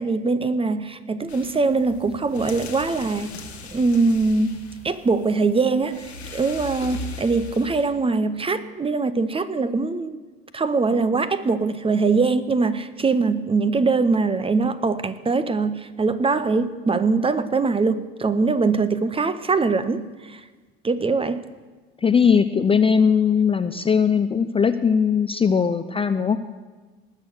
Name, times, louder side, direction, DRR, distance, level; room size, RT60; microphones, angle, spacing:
voice 1, 0.0-3.4 3.7-4.6 4.8-10.2 10.5-20.4 20.8-21.4, right 4 dB, 20° right, 0.7 m, -22 dB
sound 1, 1.3-7.9, left 2 dB, 90° left, 1.4 m, -39 dB
voice 2, 22.0-26.4, left 6 dB, 20° left, 0.5 m, -19 dB
19.0 x 6.4 x 7.9 m
hypercardioid pair, 65°, 31 cm